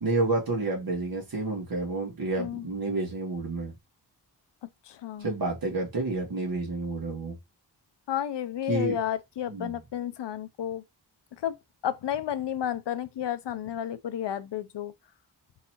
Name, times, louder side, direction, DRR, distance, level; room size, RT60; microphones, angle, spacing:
voice 1, 0.0-3.7 5.2-7.4 8.7-9.0 9.5-9.8, right 2 dB, 60° right, 1.9 m, -29 dB
voice 2, 2.4-2.7 4.6-5.3 8.1-10.8 11.3-11.6 11.8-14.9, left 10 dB, 85° left, 0.6 m, -32 dB
4.0 x 3.9 x 3.0 m
wide cardioid pair, 160°, 41 cm